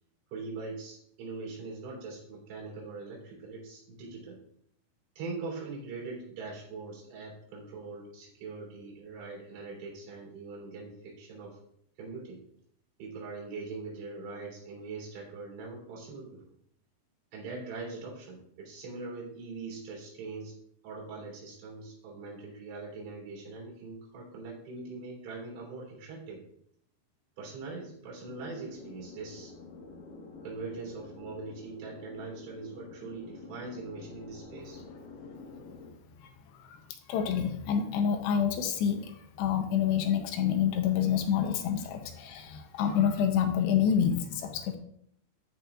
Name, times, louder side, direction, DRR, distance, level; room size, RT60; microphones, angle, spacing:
voice 1, 0.3-4.4 5.2-11.6 12.0-12.4 13.0-16.4 17.3-20.6 20.8-26.4 27.4-29.5 30.4-34.8, right 3 dB, 85° right, -4 dB, 5.4 m, -42 dB
sound 1, 28.2-35.9, left 3 dB, 65° left, 2.4 m, -48 dB
voice 2, 36.2-44.8, left 8 dB, 85° left, 6 dB, 2.7 m, -28 dB
13.0 x 5.3 x 2.4 m, 0.68 s
omnidirectional pair, 5.1 m